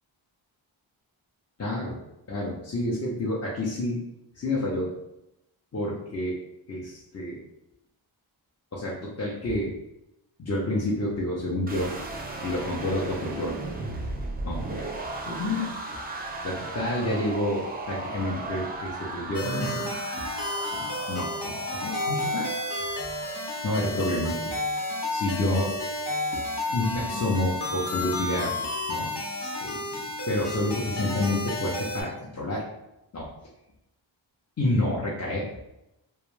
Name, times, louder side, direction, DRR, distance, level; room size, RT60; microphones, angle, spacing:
voice 1, 1.6-2.0 2.3-4.1 4.3-5.0 5.7-7.4 8.7-9.7 10.4-11.9 12.4-13.6 14.4-14.9 15.3-16.0 16.4-20.3 20.7-22.5 23.6-24.5 25.1-25.7 26.3-26.4 26.7-28.5 28.9-29.1 29.4-32.6 33.1-33.3 34.6-35.5, left 1 dB, 35° left, -6 dB, 0.5 m, -29 dB
sound 1, 11.7-23.7, right 2 dB, 20° right, 0.4 m, -36 dB
sound 2, 19.3-32.0, left 1 dB, 55° left, 0.9 m, -31 dB
2.3 x 2.1 x 3.1 m, 0.89 s
wide cardioid pair, 65°, 47 cm